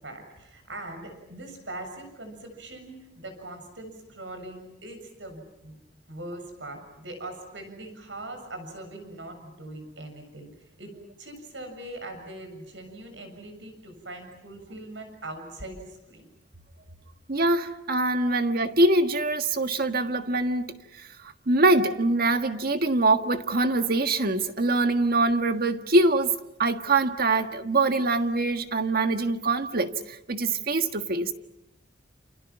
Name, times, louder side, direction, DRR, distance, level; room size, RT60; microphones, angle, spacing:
voice 1, 0.0-5.7 6.1-10.9 11.2-16.3 18.3-18.4, right 1 dB, 80° right, 5 dB, 7.2 m, -41 dB
voice 2, 17.3-20.6 21.0-31.3, right 2 dB, 55° right, 7 dB, 1.6 m, -24 dB
30.0 x 29.0 x 6.0 m, 0.86 s
head